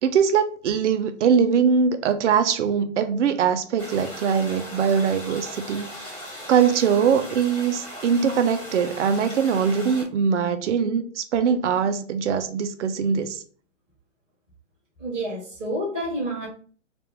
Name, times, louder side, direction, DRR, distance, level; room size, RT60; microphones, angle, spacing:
voice 1, 0.0-5.9 6.5-13.4, right 7 dB, 65° right, 0.5 m, -22 dB
sound 1, 3.8-10.0, equal, 10° left, 1.0 m, -38 dB
voice 2, 15.0-16.5, right 1 dB, 5° right, 0.3 m, -29 dB
3.4 x 2.5 x 2.9 m
hypercardioid pair, 155°, 39 cm